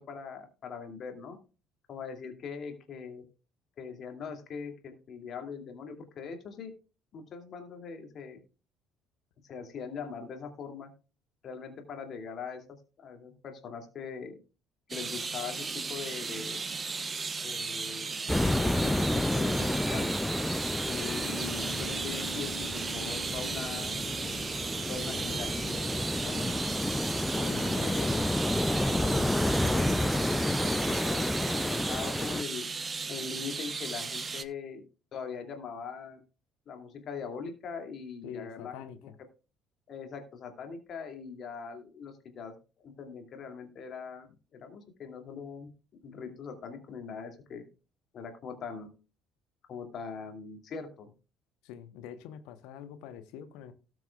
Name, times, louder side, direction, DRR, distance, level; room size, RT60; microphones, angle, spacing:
voice 1, 0.1-1.4 1.9-3.2 3.8-6.7 7.1-8.4 9.4-10.9 11.4-14.4 14.9-16.6 17.4-20.1 20.8-23.9 24.9-26.6 27.3-28.2 28.8-32.6 33.1-34.8 35.1-36.2 36.7-38.8 39.9-42.6 42.8-44.3 44.5-45.7 46.0-47.7 48.1-48.9 49.7-51.1, left 5 dB, 45° left, 4 dB, 2.4 m, -41 dB
sound 1, 14.9-34.4, right 4 dB, 25° right, 0.9 m, -36 dB
sound 2, 18.3-32.4, left 1 dB, 10° left, 0.4 m, -30 dB
Bass guitar, 21.2-27.4, equal, 90° right, 2.0 m, -49 dB
voice 2, 27.5-27.9 38.2-39.1 51.6-53.7, left 9 dB, 60° left, 11 dB, 1.0 m, -44 dB
18.5 x 6.2 x 2.3 m, 0.33 s
figure-of-eight pair, 50°, 0 cm